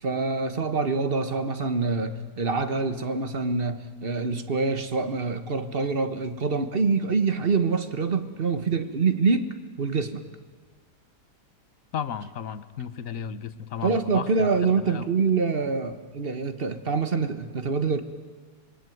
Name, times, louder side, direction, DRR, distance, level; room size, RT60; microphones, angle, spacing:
voice 1, 0.0-9.5 9.8-10.2 13.8-18.0, right 4 dB, 35° right, 10 dB, 1.5 m, -25 dB
voice 2, 11.9-14.6 14.8-15.1, left 7 dB, 55° left, 14 dB, 1.3 m, -34 dB
26.0 x 22.0 x 9.3 m, 1.5 s
omnidirectional pair, 1.8 m